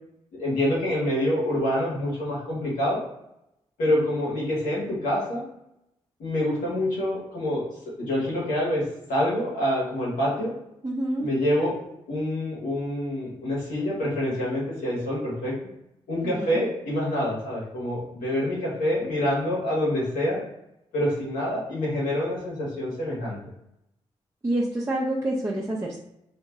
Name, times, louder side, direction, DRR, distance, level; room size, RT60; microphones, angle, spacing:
voice 1, 0.3-3.0 3.8-5.4 6.2-10.5 11.2-15.5 16.1-20.4 20.9-23.4, left 1 dB, 85° left, -6 dB, 1.4 m, -26 dB
voice 2, 10.8-11.3 16.2-16.6 24.4-26.0, right 1 dB, 20° right, -5 dB, 0.7 m, -27 dB
2.9 x 2.8 x 2.3 m, 0.83 s
supercardioid pair, 40°, 14 cm